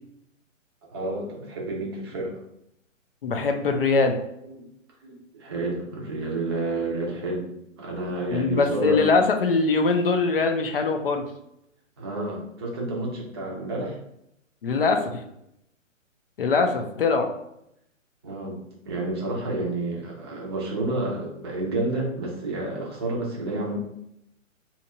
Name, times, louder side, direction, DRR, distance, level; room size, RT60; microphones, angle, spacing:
voice 1, 0.9-2.4 4.4-4.6 5.0-7.5 7.8-9.1 12.0-14.0 18.2-23.8, right 2 dB, 20° right, -3 dB, 0.6 m, -30 dB
voice 2, 3.2-4.2 8.3-11.2 14.6-15.2 16.4-17.3, left 4 dB, 45° left, 4 dB, 0.5 m, -22 dB
2.9 x 2.4 x 4.1 m, 0.78 s
hypercardioid pair, 155°, 39 cm